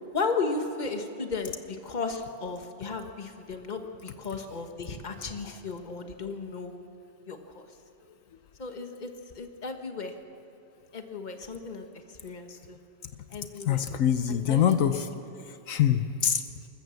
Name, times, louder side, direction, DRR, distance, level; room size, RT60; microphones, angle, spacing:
voice 1, 0.1-6.7 7.3-7.7 8.6-10.1 10.9-12.8 13.3-13.8 14.3-14.8, left 4 dB, 35° left, 6 dB, 1.4 m, -35 dB
voice 2, 13.7-15.1 15.7-16.4, left 9 dB, 80° left, 9 dB, 1.2 m, -24 dB
26.0 x 14.0 x 7.0 m, 2.7 s
omnidirectional pair, 1.4 m